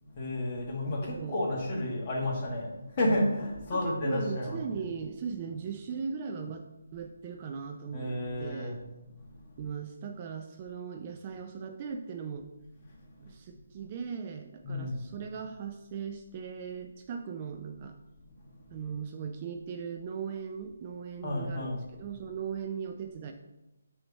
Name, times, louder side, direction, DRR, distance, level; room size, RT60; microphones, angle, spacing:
voice 1, 0.0-4.8 7.9-8.8 12.9-13.3 14.6-15.1 21.2-21.8, left 1 dB, 30° left, -3 dB, 1.6 m, -31 dB
voice 2, 1.0-1.4 3.7-6.7 6.9-8.1 8.4-8.8 9.6-12.4 13.2-18.0 18.7-23.3, right 6 dB, 25° right, 5 dB, 0.3 m, -38 dB
6.1 x 3.1 x 5.3 m, 0.96 s
hypercardioid pair, 165°, 0 cm